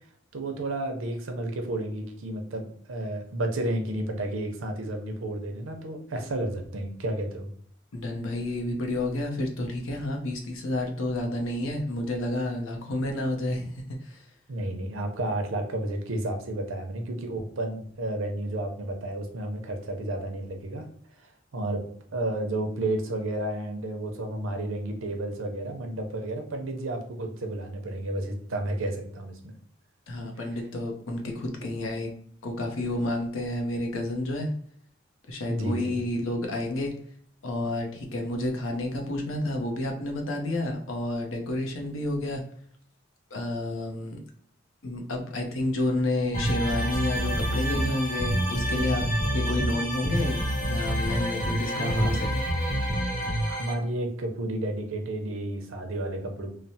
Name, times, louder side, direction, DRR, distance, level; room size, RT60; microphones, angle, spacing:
voice 1, 0.3-7.5 14.5-20.9 21.2-21.9 22.1-29.4 35.5-36.0 51.7-52.2 53.5-56.5, right 1 dB, 85° right, 4 dB, 0.6 m, -31 dB
voice 2, 7.9-14.2 30.1-32.1 32.4-34.5 35.3-36.9 37.4-42.4 43.3-44.2 44.8-49.0 49.3-52.4, left 1 dB, 90° left, 2 dB, 0.6 m, -30 dB
sound 1, 46.3-53.7, equal, 35° left, 0.8 m, -27 dB
3.1 x 2.0 x 2.6 m, 0.63 s
head